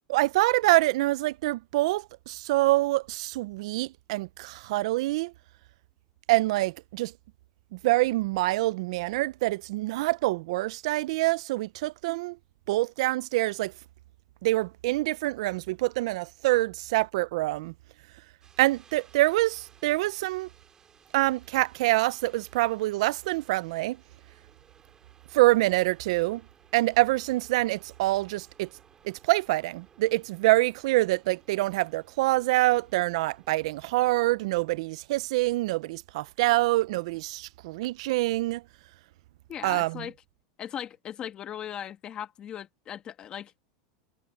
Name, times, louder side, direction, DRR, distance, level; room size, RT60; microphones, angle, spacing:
voice 1, 0.1-5.3 6.3-7.1 7.7-12.4 12.7-13.7 14.4-17.7 18.6-20.5 21.1-24.0 25.3-26.4 26.7-28.7 29.0-38.6 39.6-40.1, right 19 dB, 65° right, 0.4 m, -26 dB
sound 1, 18.4-34.2, right 7 dB, 20° right, 2.6 m, -60 dB
voice 2, 39.5-40.1 40.6-43.5, left 10 dB, 25° left, 1.5 m, -38 dB
supercardioid pair, 165°, 4 cm